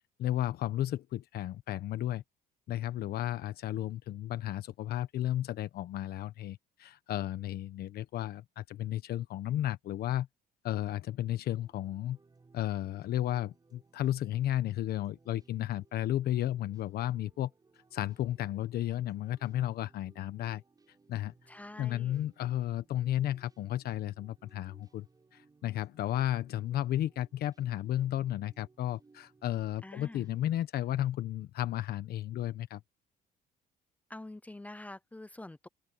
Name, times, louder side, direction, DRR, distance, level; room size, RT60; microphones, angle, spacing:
voice 1, 0.2-2.2 2.7-10.3 10.6-12.2 12.5-17.5 17.9-20.6 21.1-21.3 21.8-25.1 25.3-32.8, left 13 dB, 65° left, 1.2 m, -33 dB
sound 1, 11.6-30.5, right 4 dB, 20° right, 6.3 m, -65 dB
voice 2, 21.5-22.2 29.8-30.3 34.1-35.7, left 2 dB, 10° left, 0.6 m, -46 dB
open air
cardioid pair, 110°, 17 cm